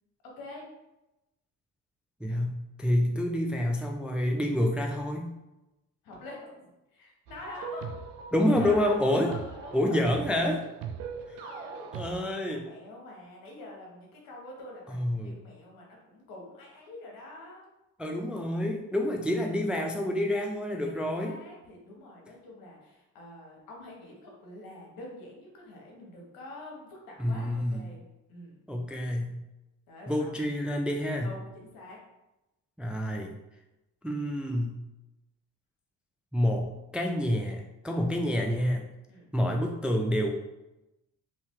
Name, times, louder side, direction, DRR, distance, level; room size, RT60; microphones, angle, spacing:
voice 1, 0.2-0.6 3.0-3.2 6.0-7.9 8.5-10.1 11.4-17.7 19.3-19.6 20.8-28.6 29.9-30.3 31.2-32.0 39.1-39.3, left 2 dB, 75° left, -2 dB, 1.2 m, -46 dB
voice 2, 2.2-5.3 8.3-9.3 9.7-10.6 11.3-11.4 11.9-12.7 14.9-15.4 18.0-21.4 27.2-27.9 28.7-29.4 30.1-31.3 32.8-33.3 34.0-34.8 36.3-36.7 36.9-38.9 39.3-40.3, left 1 dB, 5° right, 2 dB, 0.3 m, -28 dB
sound 1, 7.3-12.2, right 6 dB, 80° right, 0.5 m, -40 dB
2.8 x 2.6 x 3.6 m, 0.97 s
supercardioid pair, 70°, 35 cm